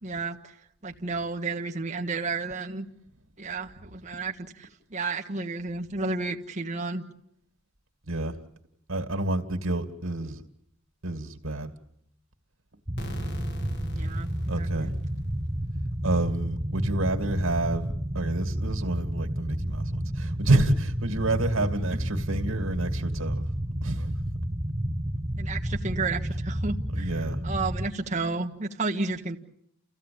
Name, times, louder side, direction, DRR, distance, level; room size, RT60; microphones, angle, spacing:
voice 1, 0.0-0.6 0.8-2.9 3.4-7.0 13.9-14.3 14.6-14.9 21.9-22.0 25.4-29.4, right 3 dB, 35° right, 1.5 m, -32 dB
voice 2, 8.1-8.4 8.9-10.4 11.0-11.7 14.5-14.9 16.0-23.4 23.8-24.2 26.9-27.4, right 2 dB, 85° right, 2.3 m, -28 dB
sound 1, 12.9-27.9, right 1 dB, 15° right, 1.2 m, -31 dB
sound 2, 13.0-15.7, equal, 55° left, 1.7 m, -44 dB
30.0 x 15.5 x 8.7 m
head